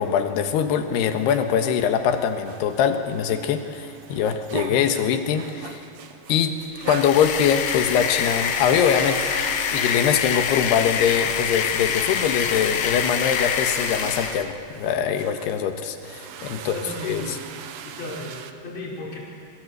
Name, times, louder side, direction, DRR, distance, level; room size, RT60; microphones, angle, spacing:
voice 1, 0.0-5.8 6.3-6.6 6.9-9.2 9.7-16.8 17.0-17.4, left 8 dB, 85° left, 7 dB, 3.5 m, -23 dB
sound 1, 0.9-18.5, right 8 dB, 75° right, 1.5 m, -40 dB
sound 2, 6.8-14.5, left 7 dB, 70° left, 1.5 m, -25 dB
voice 2, 16.5-17.4 17.8-19.2, left 1 dB, 40° left, -3 dB, 6.5 m, -35 dB
26.5 x 24.5 x 8.2 m, 2.8 s
omnidirectional pair, 4.6 m